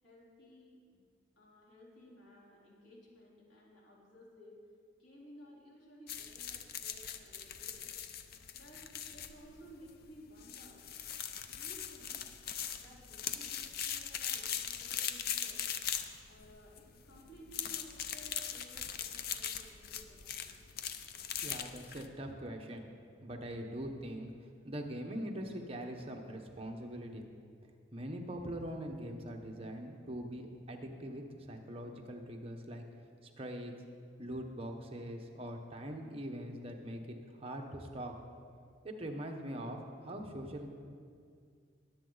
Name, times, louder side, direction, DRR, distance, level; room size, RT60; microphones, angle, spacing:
voice 1, 0.0-0.8 1.4-4.6 5.0-7.9 8.5-10.9 11.4-12.2 12.8-15.7 16.3-20.5, equal, 75° left, -5 dB, 3.7 m, -57 dB
sound 1, 6.1-22.1, left 9 dB, 50° left, 0.6 m, -40 dB
voice 2, 21.4-22.9 23.2-24.3 24.6-27.2 27.9-32.8 33.4-33.7 34.2-38.1 38.8-40.7, right 1 dB, 30° right, 2 dB, 1.1 m, -42 dB
21.0 x 7.7 x 4.0 m, 2.2 s
head